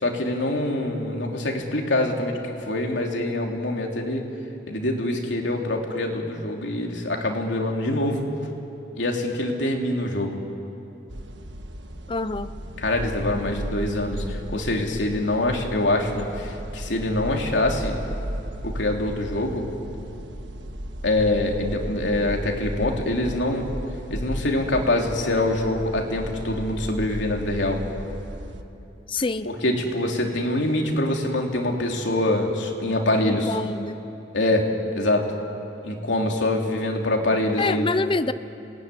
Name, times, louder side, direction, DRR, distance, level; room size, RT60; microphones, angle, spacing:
voice 1, 0.0-4.2 4.7-8.3 8.9-10.4 12.8-18.0 18.6-19.6 21.0-23.7 24.1-27.8 29.4-33.6 34.3-35.3 35.8-37.9, left 1 dB, 85° left, 1 dB, 3.1 m, -25 dB
sound 1, 11.1-28.6, equal, 85° right, 1.5 m, -35 dB
voice 2, 12.1-12.5 29.1-29.5 33.2-34.0 37.6-38.3, left 3 dB, 30° left, 12 dB, 0.6 m, -26 dB
28.0 x 19.0 x 9.9 m, 2.9 s
head